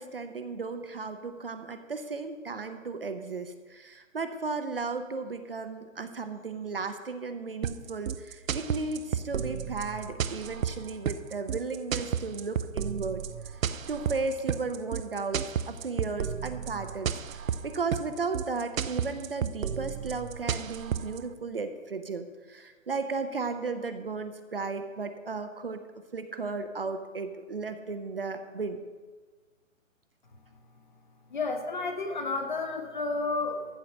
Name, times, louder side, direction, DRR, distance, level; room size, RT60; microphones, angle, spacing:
voice 1, 0.0-13.6 13.9-25.8 26.1-28.8, right 4 dB, 45° right, 8 dB, 0.7 m, -35 dB
sound 1, 7.6-21.2, right 8 dB, 80° right, 0.7 m, -32 dB
voice 2, 31.3-33.6, left 3 dB, 35° left, 5 dB, 1.1 m, -31 dB
14.0 x 4.7 x 6.5 m, 1.4 s
hypercardioid pair, 180°, 40 cm